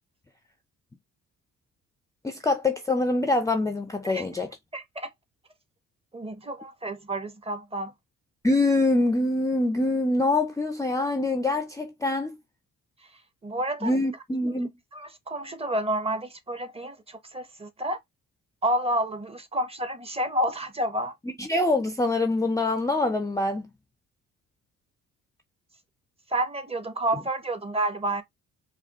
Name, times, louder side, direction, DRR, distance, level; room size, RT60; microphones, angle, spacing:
voice 1, 2.2-4.5 8.4-12.4 13.8-14.7 21.4-23.7, left 2 dB, 10° left, 0.4 m, -25 dB
voice 2, 4.7-5.1 6.1-7.9 13.4-14.0 14.9-18.0 18.6-21.1 26.3-28.2, right 1 dB, 20° right, 0.8 m, -29 dB
4.9 x 2.4 x 2.8 m
cardioid pair, 90°, 30 cm